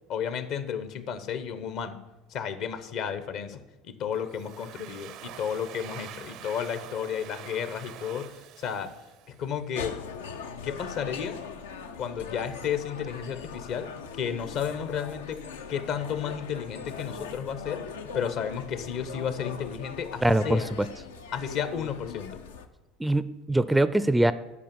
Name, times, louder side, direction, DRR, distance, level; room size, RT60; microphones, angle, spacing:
voice 1, 0.1-2.0 2.3-8.9 9.3-10.0 10.6-11.4 12.0-17.9 18.1-20.7 21.3-22.4, left 8 dB, 60° left, 12 dB, 0.9 m, -33 dB
Domestic sounds home sounds, 4.1-9.7, right 11 dB, 60° right, 0.6 m, -45 dB
sound 1, 9.7-22.7, left 6 dB, 85° left, 0.6 m, -40 dB
voice 2, 20.2-20.9 23.0-24.3, right 1 dB, 10° right, 15 dB, 0.4 m, -23 dB
8.6 x 5.2 x 6.9 m, 1.1 s
hypercardioid pair, 80°, 0 cm